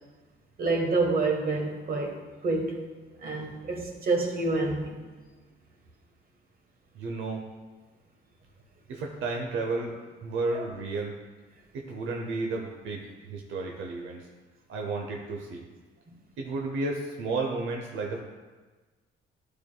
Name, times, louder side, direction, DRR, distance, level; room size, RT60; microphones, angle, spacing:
voice 1, 0.6-2.8 3.2-5.0 10.5-10.6, right 3 dB, 45° right, 1 dB, 1.3 m, -28 dB
voice 2, 6.9-7.4 8.9-11.1 11.7-14.3 14.7-15.6 16.4-18.2, right 3 dB, 80° right, 1 dB, 0.7 m, -32 dB
11.0 x 4.6 x 2.2 m, 1.3 s
cardioid pair, 90°, 20 cm